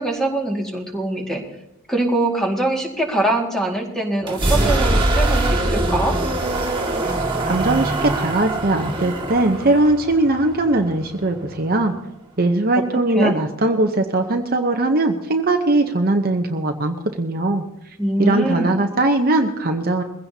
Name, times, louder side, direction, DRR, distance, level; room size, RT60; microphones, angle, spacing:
voice 1, 0.0-1.4 1.9-6.1 13.2-13.3 18.0-18.8, right 1 dB, ahead, 0 dB, 2.0 m, -22 dB
sound 1, 4.2-11.9, right 1 dB, 20° right, 2.1 m, -23 dB
voice 2, 7.4-11.9 12.4-17.6 18.2-20.0, right 2 dB, 45° right, 4 dB, 0.8 m, -20 dB
21.5 x 16.0 x 2.8 m, 0.86 s
head